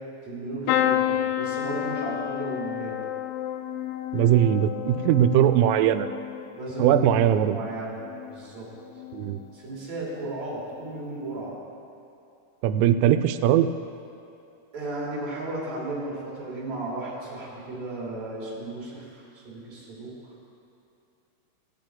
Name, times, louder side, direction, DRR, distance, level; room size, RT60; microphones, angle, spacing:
voice 1, 0.2-3.0 6.5-8.0 8.3-8.7 9.5-11.6 14.7-20.1, right 2 dB, 40° right, -7 dB, 3.5 m, -34 dB
sound 1, 0.7-8.5 8.9-9.5 10.7-10.9 11.2-11.3, left 11 dB, 85° left, 2.9 m, -31 dB
voice 2, 4.1-6.1 6.8-7.6 9.1-9.4 12.6-13.7, right 11 dB, 85° right, 10 dB, 3.1 m, -20 dB
19.0 x 7.5 x 3.6 m, 2.8 s
omnidirectional pair, 5.7 m